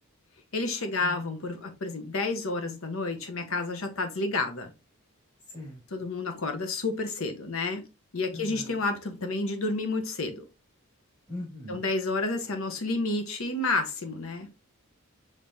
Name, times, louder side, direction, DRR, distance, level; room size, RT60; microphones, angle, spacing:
voice 1, 0.5-4.7 5.9-7.8 8.1-10.4 11.7-14.5, left 3 dB, 65° left, 0.8 m, -30 dB
voice 2, 5.5-6.1 8.3-8.8 11.3-11.9, left 1 dB, 20° left, 2.0 m, -41 dB
5.3 x 3.3 x 2.6 m
head